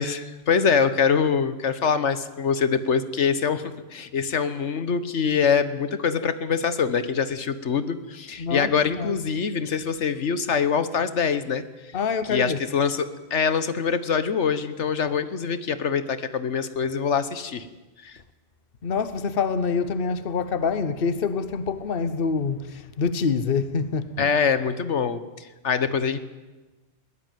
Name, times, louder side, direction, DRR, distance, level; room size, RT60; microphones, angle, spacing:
voice 1, 0.0-11.6 12.3-17.7 18.0-18.2 24.2-26.2, left 6 dB, 75° left, 1.4 m, -24 dB
voice 2, 8.4-9.2 11.9-12.6 18.8-24.3, left 5 dB, 55° left, 1.2 m, -26 dB
21.5 x 18.0 x 9.2 m
omnidirectional pair, 1.2 m